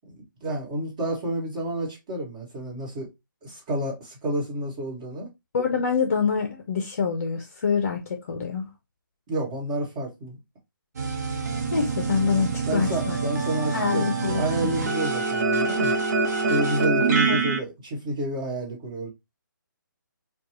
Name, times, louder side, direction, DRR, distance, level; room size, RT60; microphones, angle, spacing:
voice 1, 0.4-3.1 3.4-5.3 9.3-10.4 12.7-15.9 16.5-19.1, right 1 dB, 20° right, 1.7 m, -29 dB
voice 2, 5.5-8.7 11.7-13.2 13.7-14.7 17.3-17.4, left 5 dB, 40° left, 0.7 m, -26 dB
sound 1, 11.0-17.6, right 4 dB, 50° right, 0.9 m, -25 dB
4.8 x 2.4 x 3.0 m
hypercardioid pair, 170°, 11 cm